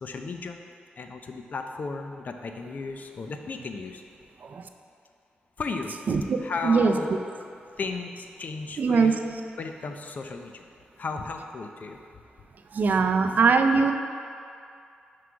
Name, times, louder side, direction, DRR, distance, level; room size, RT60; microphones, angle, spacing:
voice 1, 0.0-0.6 1.0-4.0 5.6-6.0 6.4-7.2 7.8-9.2 9.6-10.6 11.0-12.0, left 4 dB, 50° left, 5 dB, 0.5 m, -35 dB
voice 2, 6.1-6.4 6.6-6.9 8.8-9.2 12.7-13.9, right 4 dB, 55° right, 6 dB, 0.4 m, -21 dB
6.0 x 4.8 x 4.7 m, 2.4 s
wide cardioid pair, 110°, 3 cm